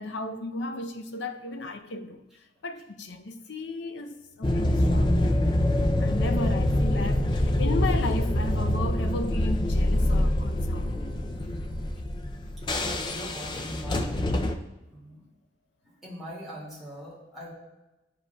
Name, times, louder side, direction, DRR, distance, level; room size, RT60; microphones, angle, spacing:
voice 1, 0.0-10.9, left 2 dB, 85° left, 0.6 m, -35 dB
sound 1, 4.4-14.5, left 1 dB, 25° left, 0.3 m, -25 dB
voice 2, 12.8-14.3 14.9-15.2 15.8-17.5, equal, ahead, 2.1 m, -42 dB
10.5 x 4.9 x 2.2 m
head